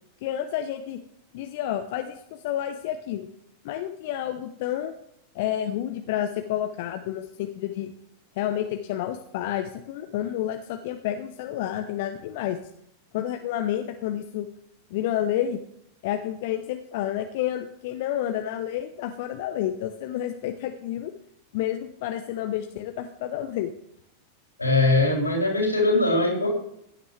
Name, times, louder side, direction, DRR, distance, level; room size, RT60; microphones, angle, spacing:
voice 1, 0.2-1.0 1.3-3.3 3.6-4.9 5.3-7.9 8.4-12.6 13.1-14.5 14.9-15.6 16.0-21.1 21.5-23.7, left 11 dB, 50° left, 6 dB, 0.9 m, -30 dB
voice 2, 24.6-26.5, left 2 dB, 80° left, 0 dB, 3.9 m, -21 dB
16.5 x 9.5 x 3.3 m, 0.74 s
figure-of-eight pair, 90°, 0 cm